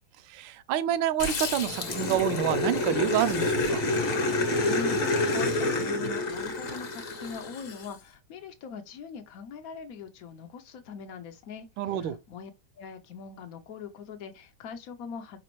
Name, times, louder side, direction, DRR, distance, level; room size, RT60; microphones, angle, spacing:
voice 1, 0.3-3.8 11.8-12.2, right 11 dB, 75° right, 1.2 m, -28 dB
Growling, 1.2-7.9, left 2 dB, 50° left, 1.0 m, -28 dB
voice 2, 4.3-12.5 12.8-15.4, left 6 dB, 85° left, 0.7 m, -42 dB
5.1 x 3.4 x 3.0 m
omnidirectional pair, 2.3 m